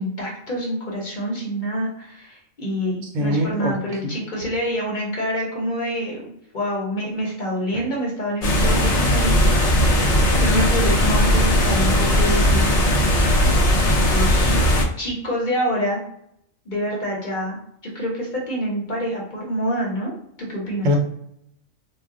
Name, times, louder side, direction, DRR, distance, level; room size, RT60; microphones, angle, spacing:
voice 1, 0.0-12.8 13.8-14.6 15.0-16.0 16.7-17.6 17.8-20.1 20.4-20.9, equal, 45° left, -3 dB, 0.8 m, -27 dB
voice 2, 3.0-3.8 4.0-4.1 7.7-7.8 20.8-20.9, left 1 dB, 80° right, 2 dB, 1.0 m, -23 dB
sound 1, 8.4-14.9, left 1 dB, 65° left, 0.3 m, -18 dB
2.4 x 2.3 x 3.6 m, 0.73 s
omnidirectional pair, 1.3 m